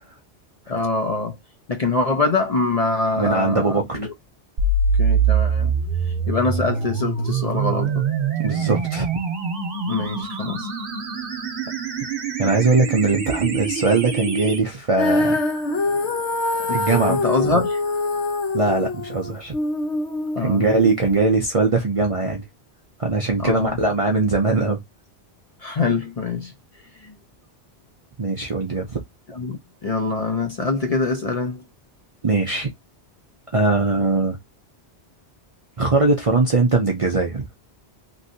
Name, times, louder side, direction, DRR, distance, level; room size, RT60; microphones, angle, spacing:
voice 1, 0.7-1.4 1.7-4.1 5.0-5.7 6.3-8.1 9.9-10.7 16.7-16.8 17.1-17.8 20.4-20.7 23.4-23.8 25.6-26.5 27.0-27.1 29.3-31.6, left 3 dB, 40° left, 0.7 m, -24 dB
voice 2, 3.1-4.0 8.4-9.1 12.4-15.4 16.7-17.2 18.5-19.5 20.4-22.4 23.0-24.8 28.2-29.0 32.2-32.7 33.5-34.4 35.8-37.5, right 3 dB, 40° right, 0.5 m, -20 dB
sound 1, 4.6-14.6, right 5 dB, 55° right, 1.0 m, -24 dB
Female singing, 15.0-21.2, left 2 dB, 80° left, 1.2 m, -24 dB
3.0 x 2.6 x 2.7 m
omnidirectional pair, 1.2 m